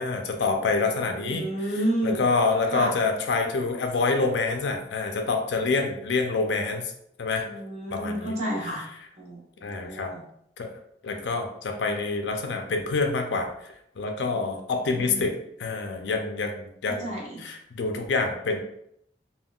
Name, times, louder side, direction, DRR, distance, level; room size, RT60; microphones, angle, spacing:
voice 1, 0.0-1.5 2.0-6.8 7.2-7.5 7.9-8.3 9.6-10.1 10.6-10.7 11.0-15.3 15.6-18.6, left 3 dB, 75° left, 4 dB, 0.4 m, -27 dB
voice 2, 0.8-2.2 2.7-2.9 7.4-8.8 9.2-10.2 14.3-14.6 14.9-15.2 16.9-17.4, right 1 dB, 35° right, -3 dB, 0.8 m, -31 dB
3.5 x 2.2 x 2.3 m, 0.73 s
head